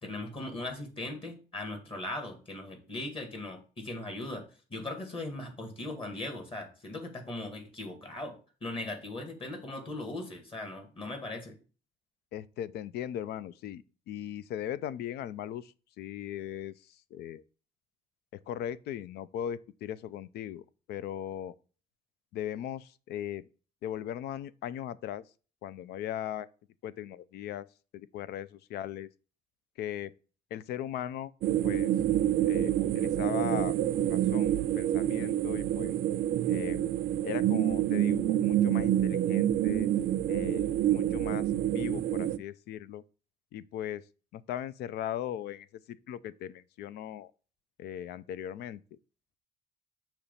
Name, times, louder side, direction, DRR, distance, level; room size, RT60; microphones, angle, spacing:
voice 1, 0.0-11.6, left 2 dB, 30° left, 1.9 m, -39 dB
voice 2, 12.3-16.7 17.1-17.4 18.5-21.5 22.3-23.4 23.8-25.2 25.6-26.5 26.8-27.7 27.9-29.1 29.8-30.1 30.5-31.3 31.6-31.9 32.5-35.9 36.5-36.9 37.2-39.9 40.3-43.0 43.5-44.0 44.3-47.3 47.8-48.8, left 10 dB, 70° left, 0.5 m, -38 dB
sound 1, 31.4-42.4, right 12 dB, 60° right, 0.4 m, -27 dB
6.6 x 3.0 x 5.4 m
cardioid pair, 110°, 17 cm